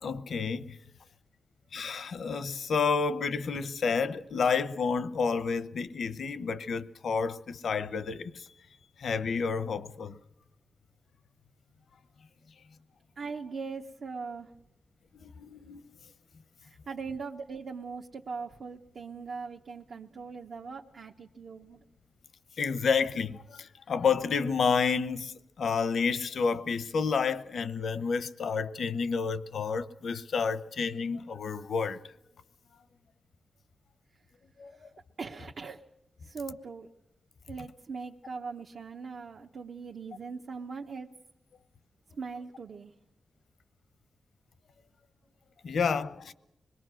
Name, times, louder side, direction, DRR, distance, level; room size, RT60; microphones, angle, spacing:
voice 1, 0.0-0.8 1.7-8.5 9.0-10.2 15.2-16.0 22.6-32.0 34.6-34.7 45.6-46.3, left 5 dB, 80° left, 0.9 m, -30 dB
voice 2, 13.2-14.5 16.6-21.8 34.7-34.9 35.2-35.8 36.2-36.9 37.5-41.1 42.1-42.9, right 5 dB, 70° right, 0.9 m, -40 dB
25.5 x 21.5 x 6.3 m
wide cardioid pair, 105°, 0 cm